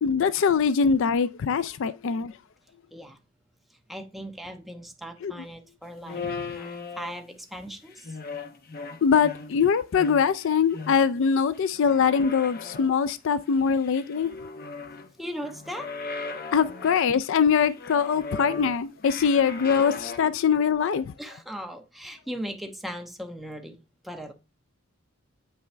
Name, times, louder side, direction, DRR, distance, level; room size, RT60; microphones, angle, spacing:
voice 1, 0.0-2.3 5.2-5.3 9.0-14.3 16.5-21.1, left 6 dB, 65° left, 0.4 m, -23 dB
voice 2, 3.9-8.2 15.2-15.9 21.2-23.8 24.0-24.3, equal, ahead, 1.1 m, -38 dB
sound 1, 6.0-7.4 7.9-9.7 10.0-11.2 11.5-13.0 13.5-15.1 15.4-17.1 17.6-20.2, left 4 dB, 45° left, 1.0 m, -38 dB
8.9 x 5.5 x 3.3 m
head